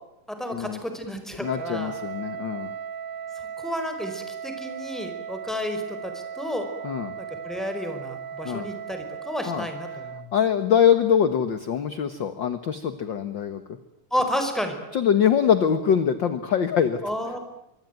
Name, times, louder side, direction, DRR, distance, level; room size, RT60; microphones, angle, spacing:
voice 1, 0.3-1.9 3.6-6.7 7.2-10.3 14.1-14.8 17.0-17.4, equal, ahead, 6 dB, 4.7 m, -31 dB
voice 2, 1.4-2.7 6.8-7.1 8.4-8.7 9.4-9.7 10.3-13.6 14.9-17.0, left 8 dB, 50° left, 10 dB, 1.5 m, -23 dB
Wind instrument woodwind instrument, 1.4-10.3, right 7 dB, 50° right, 1.4 m, -37 dB
25.0 x 24.5 x 9.4 m, 0.85 s
omnidirectional pair, 3.7 m